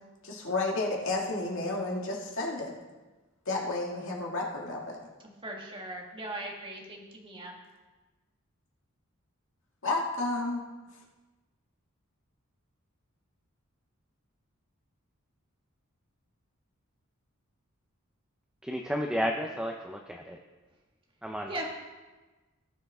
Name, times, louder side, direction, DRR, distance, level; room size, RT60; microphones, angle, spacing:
voice 1, 0.2-2.7 3.5-5.0 9.8-10.6, left 2 dB, 65° left, -2 dB, 2.1 m, -31 dB
voice 2, 5.4-7.5 21.5-21.7, right 1 dB, 25° right, -1 dB, 1.8 m, -39 dB
voice 3, 18.6-20.4 21.2-21.5, equal, 5° right, 2 dB, 0.6 m, -32 dB
18.0 x 6.6 x 3.6 m, 1.2 s
head